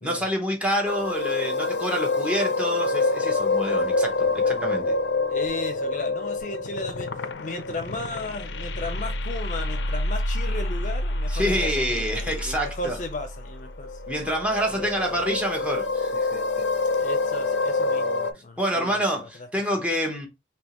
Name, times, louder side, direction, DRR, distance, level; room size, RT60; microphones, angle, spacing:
voice 1, 0.0-4.9 11.3-13.0 14.1-16.6 18.6-20.3, equal, 5° right, 0.9 m, -27 dB
sound 1, 0.8-18.3, left 2 dB, 90° left, 0.5 m, -27 dB
voice 2, 5.3-7.1 7.4-14.0 14.7-14.9 15.1-15.4 17.0-19.5 19.7-19.8, left 2 dB, 45° left, 0.6 m, -35 dB
3.5 x 2.9 x 3.0 m
head